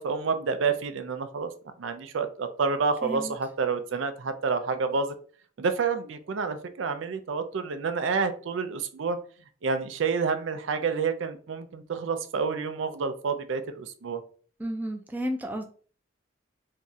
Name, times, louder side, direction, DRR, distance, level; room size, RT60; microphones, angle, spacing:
voice 1, 0.0-1.5 1.8-5.1 5.6-9.2 9.6-14.2, right 5 dB, 85° right, 9 dB, 0.5 m, -29 dB
voice 2, 3.0-3.3 14.6-15.6, equal, 10° right, 3 dB, 0.4 m, -32 dB
2.7 x 2.3 x 3.9 m, 0.42 s
head